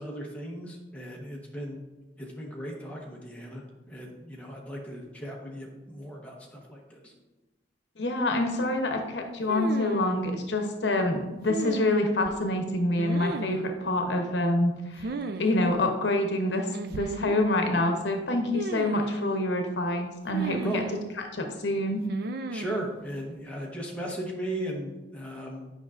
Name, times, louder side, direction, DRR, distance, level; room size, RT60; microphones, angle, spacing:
voice 1, 0.0-1.9 2.2-7.1 20.6-20.8 22.5-25.7, right 1 dB, 10° left, -2 dB, 1.0 m, -37 dB
voice 2, 8.0-15.1 15.4-20.8 21.3-22.0, left 1 dB, 75° left, 4 dB, 0.8 m, -26 dB
sound 1, 9.5-10.2 11.5-12.3 13.0-13.7 15.0-15.5 15.7-15.8 16.7-17.4 18.5-19.3 20.3-21.1 22.1-22.8, right 3 dB, 60° right, 0.4 m, -34 dB
9.1 x 5.2 x 2.5 m, 1.1 s
head